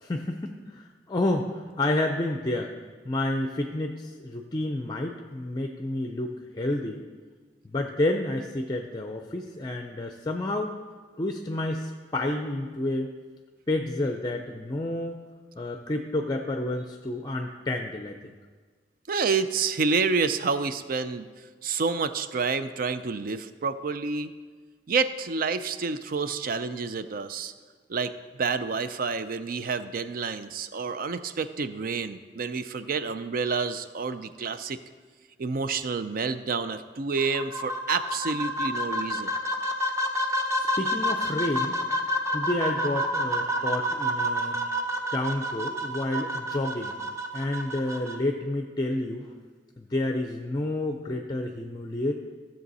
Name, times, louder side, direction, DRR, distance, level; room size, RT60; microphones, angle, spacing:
voice 1, 0.0-2.7 3.0-7.0 7.6-10.8 11.2-13.1 13.7-15.2 15.6-18.2 40.5-42.0 42.3-44.6 45.1-46.9 47.3-49.3 49.8-52.1, left 1 dB, 25° left, 4 dB, 0.5 m, -30 dB
voice 2, 19.1-21.3 21.6-24.3 24.9-27.5 27.9-28.1 28.4-34.8 35.4-39.3, right 4 dB, 55° right, 12 dB, 0.5 m, -29 dB
sound 1, 37.2-48.1, equal, 15° right, 0.8 m, -29 dB
14.0 x 6.9 x 4.1 m, 1.5 s
head